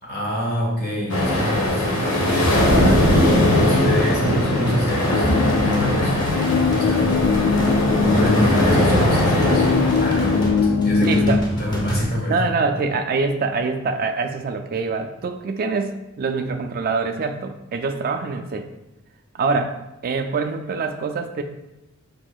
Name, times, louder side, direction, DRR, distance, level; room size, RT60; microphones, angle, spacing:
voice 1, 0.0-2.6 3.1-6.2 6.7-9.7 10.0-12.5, equal, 45° left, -3 dB, 1.5 m, -26 dB
sound 1, 1.1-10.5, left 1 dB, 70° left, 1.0 m, -20 dB
sound 2, 4.7-12.0, equal, 20° left, 0.7 m, -30 dB
sound 3, 5.1-11.4, left 5 dB, 85° left, 0.3 m, -22 dB
voice 2, 11.0-11.4 12.3-18.7 19.3-19.8 20.0-21.4, right 4 dB, 40° right, 5 dB, 0.3 m, -24 dB
5.1 x 4.4 x 2.3 m, 0.93 s
head